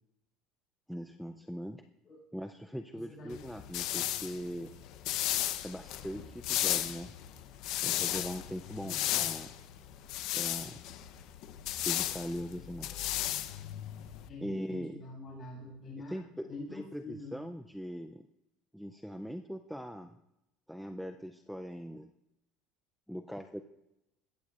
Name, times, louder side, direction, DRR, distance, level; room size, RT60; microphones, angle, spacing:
voice 1, 0.9-1.8 2.3-4.7 5.6-7.1 7.8-9.5 10.3-10.8 11.7-12.9 14.4-15.0 16.1-18.2 18.7-20.2 20.7-22.1 23.1-23.6, equal, ahead, 7 dB, 0.3 m, -41 dB
voice 2, 2.9-3.4 8.7-9.0 14.3-17.4, left 2 dB, 30° left, -2 dB, 6.5 m, -46 dB
sound 1, 3.3-14.3, left 13 dB, 55° left, 0.7 m, -35 dB
21.0 x 14.5 x 2.4 m, 0.89 s
cardioid pair, 170°, 0 cm